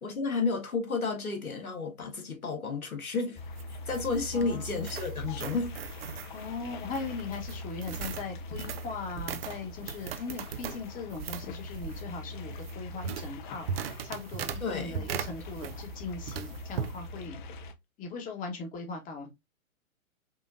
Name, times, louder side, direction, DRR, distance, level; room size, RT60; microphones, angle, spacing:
voice 1, 0.0-3.4 3.7-5.8 14.6-15.1, left 4 dB, 90° left, 1.4 m, -32 dB
sound 1, 3.4-17.7, left 2 dB, 35° left, 0.6 m, -42 dB
sound 2, 3.4-16.0 16.3-17.0, right 8 dB, 45° right, 0.5 m, -39 dB
voice 2, 4.3-4.8 6.3-13.7 14.0-17.6 18.0-19.3, left 4 dB, 20° left, 1.1 m, -39 dB
5.5 x 2.4 x 2.5 m
hypercardioid pair, 120°, 42 cm